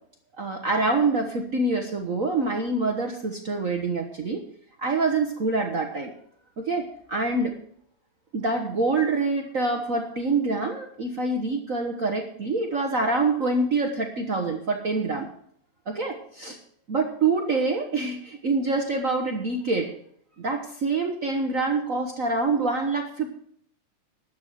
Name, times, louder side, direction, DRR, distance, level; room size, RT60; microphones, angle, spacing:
voice 1, 0.4-4.4 4.8-6.1 6.6-7.6 8.3-15.3 15.9-16.6 16.9-19.9 20.4-23.3, right 3 dB, 70° right, 3 dB, 0.7 m, -26 dB
12.5 x 8.4 x 6.4 m, 0.63 s
omnidirectional pair, 3.3 m